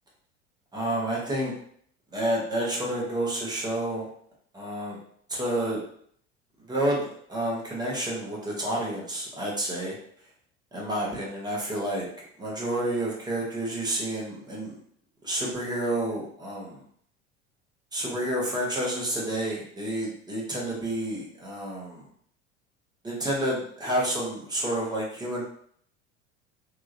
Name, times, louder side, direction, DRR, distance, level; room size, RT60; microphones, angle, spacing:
voice 1, 0.7-1.5 2.1-4.1 4.5-5.0 5.3-5.8 6.6-10.0 10.7-12.1 12.4-14.7 15.2-16.8 17.9-22.1 23.0-25.5, right 1 dB, 10° right, -3 dB, 0.9 m, -29 dB
2.8 x 2.3 x 2.6 m, 0.63 s
figure-of-eight pair, 70°, 36 cm